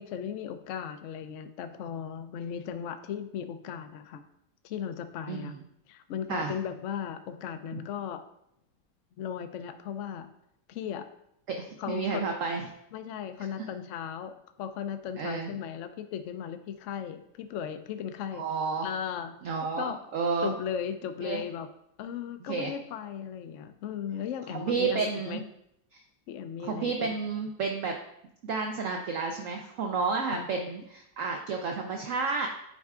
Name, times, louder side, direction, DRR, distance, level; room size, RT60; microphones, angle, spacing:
voice 1, 0.0-4.2 4.6-5.5 5.9-8.2 9.2-10.3 10.7-11.1 11.8-12.3 12.9-14.3 14.6-18.4 18.8-19.3 19.8-20.0 20.4-21.7 22.0-25.4 26.3-27.2 30.3-30.5, left 8 dB, 75° left, 8 dB, 0.7 m, -36 dB
voice 2, 5.3-5.6 6.3-6.5 7.7-7.8 11.5-12.7 15.2-15.5 18.3-18.9 19.4-20.5 21.2-21.4 22.5-22.7 24.5-25.4 25.9-26.0 26.6-27.9 28.4-32.5, right 4 dB, 65° right, 3 dB, 0.8 m, -31 dB
9.5 x 4.6 x 2.4 m, 0.77 s
omnidirectional pair, 1.8 m